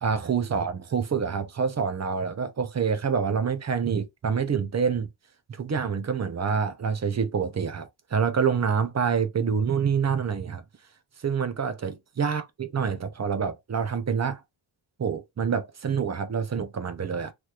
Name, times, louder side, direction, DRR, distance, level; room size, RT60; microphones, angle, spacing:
voice 1, 0.0-5.1 5.5-10.6 11.2-14.4 15.0-17.3, right 6 dB, 35° right, 0.5 m, -27 dB
3.3 x 3.0 x 2.4 m
wide cardioid pair, 170°, 48 cm